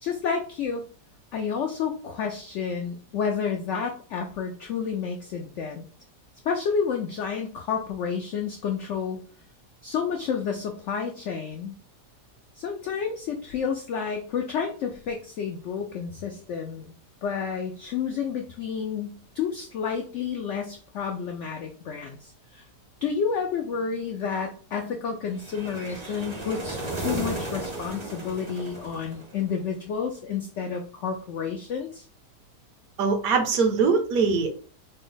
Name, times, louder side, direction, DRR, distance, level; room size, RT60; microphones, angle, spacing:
voice 1, 0.0-0.9 1.3-5.9 6.4-9.2 9.8-11.7 12.6-16.9 17.2-22.6 23.0-32.0, left 6 dB, 90° left, 3 dB, 0.6 m, -30 dB
sound 1, 25.4-29.6, right 1 dB, 35° right, 0.4 m, -34 dB
voice 2, 33.0-34.5, right 5 dB, 70° right, 5 dB, 1.0 m, -22 dB
4.2 x 2.0 x 3.8 m, 0.42 s
omnidirectional pair, 1.8 m